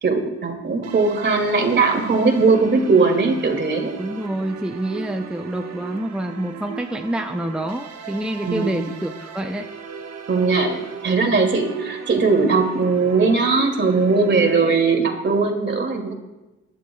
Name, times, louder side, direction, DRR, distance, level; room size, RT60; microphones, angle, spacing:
voice 1, 0.0-4.0 8.4-8.9 10.3-16.2, right 4 dB, 35° right, 3 dB, 2.5 m, -19 dB
sound 1, 0.8-14.5, right 7 dB, 60° right, 1.3 m, -37 dB
voice 2, 4.0-9.7, right 1 dB, 5° right, 4 dB, 0.6 m, -27 dB
24.5 x 11.0 x 2.3 m, 1.1 s
cardioid pair, 90°, 30 cm